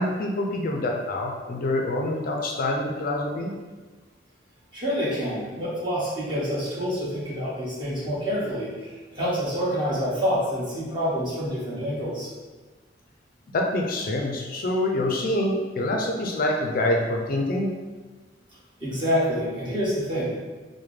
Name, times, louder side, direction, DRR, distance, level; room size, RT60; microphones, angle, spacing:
voice 1, 0.0-3.5 13.5-17.7, left 1 dB, 50° left, 1 dB, 0.4 m, -26 dB
voice 2, 4.7-12.3 18.8-20.3, equal, 25° right, -9 dB, 1.3 m, -27 dB
4.8 x 2.1 x 3.2 m, 1.3 s
head